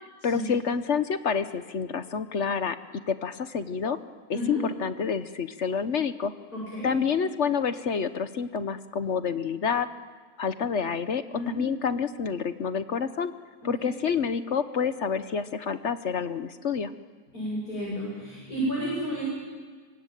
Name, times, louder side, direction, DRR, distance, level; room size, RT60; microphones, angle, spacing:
voice 1, 0.2-2.8 3.1-4.0 4.3-6.3 6.8-9.9 10.4-13.3 13.6-16.9, left 6 dB, 55° left, 11 dB, 1.2 m, -28 dB
voice 2, 4.3-4.6 6.5-6.9 11.3-11.7 13.6-13.9 17.3-19.2, equal, 70° left, -5 dB, 8.5 m, -32 dB
24.5 x 24.0 x 9.2 m, 1.5 s
omnidirectional pair, 1.6 m